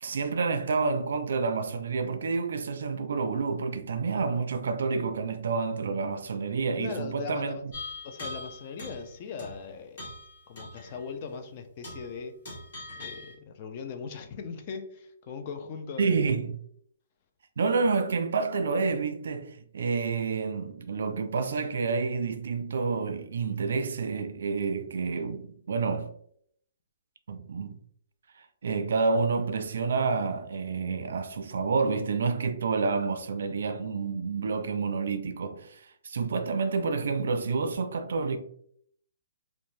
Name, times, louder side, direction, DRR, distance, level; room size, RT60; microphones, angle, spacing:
voice 1, 0.0-7.7 16.0-16.5 17.6-26.1 27.3-27.8 28.6-38.4, right 4 dB, 65° right, 0.4 m, -29 dB
voice 2, 6.8-7.6 8.0-10.0 10.5-12.4 13.0-16.4, left 5 dB, 30° left, 0.3 m, -39 dB
sound 1, 7.7-9.1 9.4-9.6 10.0-11.0 11.3-11.4 11.8-12.1 12.4-13.3, left 2 dB, 45° left, 1.3 m, -41 dB
2.6 x 2.0 x 3.0 m
hypercardioid pair, 175°, 0 cm